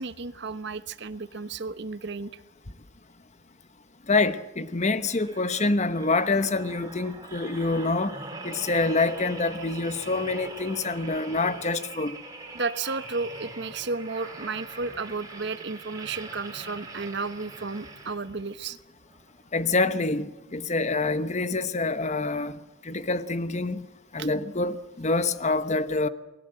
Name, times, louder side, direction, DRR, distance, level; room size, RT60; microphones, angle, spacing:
voice 1, 0.0-2.4 12.5-18.8 24.2-24.3, right 4 dB, 55° right, 1.1 m, -33 dB
voice 2, 4.1-8.1 8.4-12.2 19.5-23.9 24.1-26.1, left 3 dB, 35° left, 1.0 m, -26 dB
sound 1, 4.9-18.5 19.1-19.3, right 2 dB, 20° right, 3.9 m, -42 dB
29.5 x 20.0 x 7.8 m
head